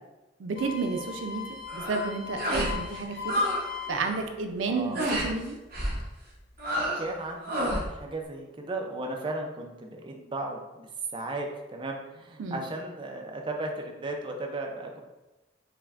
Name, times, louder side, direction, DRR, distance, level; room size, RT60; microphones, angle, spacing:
voice 1, 0.4-1.4 1.7-3.4 3.9-5.6 12.4-12.7, right 4 dB, 85° right, 5 dB, 0.4 m, -31 dB
sound 1, 0.6-4.3 4.6-6.0 6.6-7.1, left 8 dB, 55° left, 0.5 m, -40 dB
sound 2, 1.7-2.0 2.4-2.8 3.0-3.6 3.9-4.2 4.9-5.3 5.7-6.0 6.6-7.1 7.4-7.9, equal, 50° right, 0.9 m, -29 dB
voice 2, 4.7-5.0 7.0-10.9 11.1-15.0, right 2 dB, 25° right, 2 dB, 0.4 m, -35 dB
5.6 x 2.1 x 2.4 m, 1.1 s
head